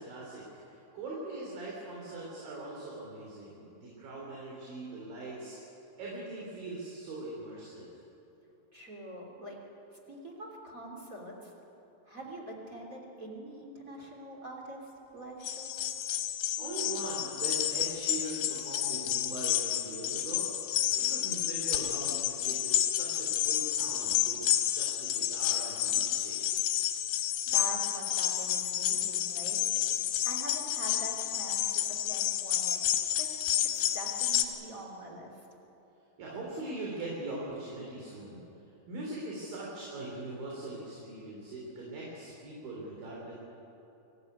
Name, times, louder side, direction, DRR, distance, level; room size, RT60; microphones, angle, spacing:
voice 1, 0.0-5.6 6.0-7.9 16.6-20.5 21.0-24.4 24.7-26.5 36.2-38.4 38.9-43.3, right 2 dB, 50° right, -4 dB, 4.7 m, -41 dB
voice 2, 8.7-9.6 9.9-11.5 12.0-15.9 27.2-29.8 30.2-32.8 33.2-33.3 33.9-35.3, right 1 dB, 20° right, -2 dB, 2.5 m, -44 dB
sound 1, 15.4-34.4, left 12 dB, 70° left, 3.3 m, -30 dB
24.0 x 15.5 x 9.6 m, 3.0 s
omnidirectional pair, 5.6 m